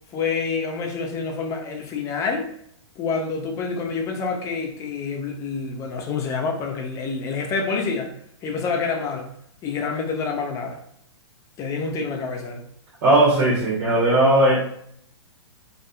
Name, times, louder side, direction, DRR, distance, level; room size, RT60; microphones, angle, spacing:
voice 1, 0.1-2.5 3.0-8.1 8.4-9.3 9.6-10.8 11.6-12.6, left 4 dB, 20° left, 3 dB, 0.3 m, -27 dB
voice 2, 13.0-14.6, right 1 dB, 55° right, -5 dB, 0.9 m, -17 dB
2.7 x 2.2 x 2.2 m, 0.68 s
hypercardioid pair, 125°, 15 cm